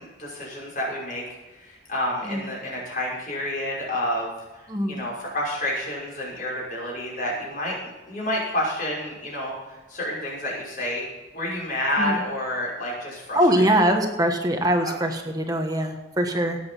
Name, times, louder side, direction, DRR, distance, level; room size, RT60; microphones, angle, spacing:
voice 1, 0.0-11.1 11.3-13.7 14.8-14.9, left 1 dB, 45° left, -4 dB, 5.8 m, -29 dB
voice 2, 4.7-5.0 12.0-12.2 13.3-16.6, right 1 dB, 20° right, 4 dB, 1.2 m, -22 dB
18.0 x 7.9 x 5.5 m, 1.2 s
head